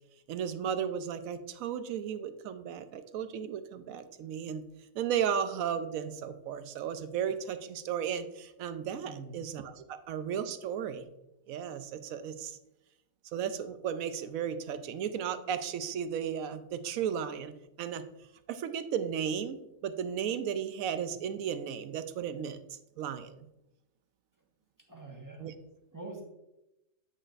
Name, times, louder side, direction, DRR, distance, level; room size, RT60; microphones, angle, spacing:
voice 1, 0.3-4.6 4.9-11.0 11.5-12.6 13.3-18.0 18.5-23.5 25.4-25.5, right 8 dB, 80° right, 11 dB, 1.0 m, -35 dB
voice 2, 9.0-9.4 24.9-25.5 25.9-26.2, right 3 dB, 15° right, -2 dB, 1.4 m, -44 dB
9.0 x 6.3 x 2.5 m, 0.91 s
omnidirectional pair, 1.5 m